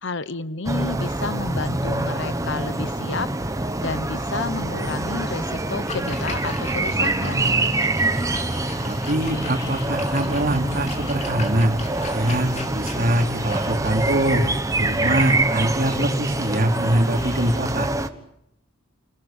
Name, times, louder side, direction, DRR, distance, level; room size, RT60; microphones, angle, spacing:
voice 1, 0.0-3.3 3.8-7.5, left 3 dB, 65° left, 16 dB, 1.0 m, -30 dB
sound 1, 0.6-18.1, right 2 dB, 15° right, 1.2 m, -25 dB
sound 2, 4.8-17.6, left 2 dB, 20° left, 3.8 m, -44 dB
Splash splatter, 5.7-15.5, left 3 dB, 35° left, 4.2 m, -40 dB
voice 2, 8.8-11.7 12.1-14.4 14.8-17.9, right 1 dB, 45° right, 3 dB, 3.5 m, -23 dB
29.0 x 20.5 x 8.9 m, 0.79 s
head